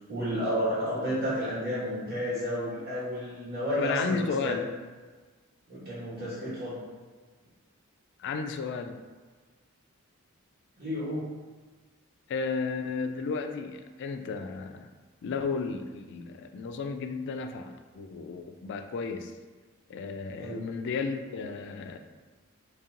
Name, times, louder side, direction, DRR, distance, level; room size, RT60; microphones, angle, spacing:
voice 1, 0.1-4.6 5.7-6.8 10.8-11.3 20.4-20.6, equal, 40° right, -12 dB, 1.1 m, -31 dB
voice 2, 3.8-4.7 8.2-9.0 12.3-14.9 15.2-19.3 19.9-22.0, left 4 dB, 55° left, 6 dB, 0.3 m, -33 dB
3.2 x 2.9 x 3.7 m, 1.4 s
head